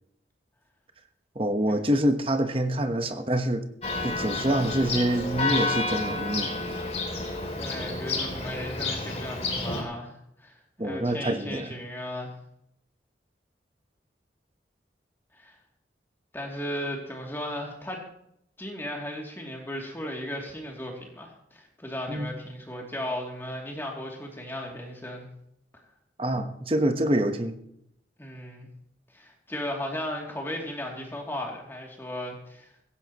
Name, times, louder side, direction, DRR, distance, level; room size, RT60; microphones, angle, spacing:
voice 1, 1.3-3.7 4.0-6.5 10.8-11.8 22.1-22.3 26.2-27.6, right 1 dB, 30° right, 7 dB, 1.2 m, -26 dB
Church bell, 3.8-9.8, left 3 dB, 35° left, 3.0 m, -30 dB
voice 2, 7.6-10.1 10.4-10.6 10.8-12.3 15.4-15.6 16.3-18.0 18.6-25.3 28.2-28.7 29.1-32.7, left 1 dB, 15° left, -1 dB, 2.8 m, -36 dB
17.0 x 16.0 x 3.1 m, 0.74 s
head